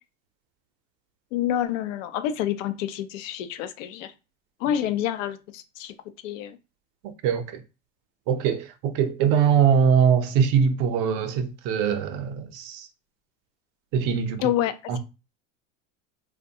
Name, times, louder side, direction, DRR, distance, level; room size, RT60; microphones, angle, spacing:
voice 1, 1.3-4.1 4.6-5.9 6.2-6.6 14.4-15.0, left 11 dB, 75° left, 0.5 m, -28 dB
voice 2, 7.2-7.6 8.3-12.9 13.9-14.4 14.9-15.0, right 7 dB, 55° right, 0.6 m, -22 dB
2.6 x 2.2 x 2.6 m
hypercardioid pair, 95°, 39 cm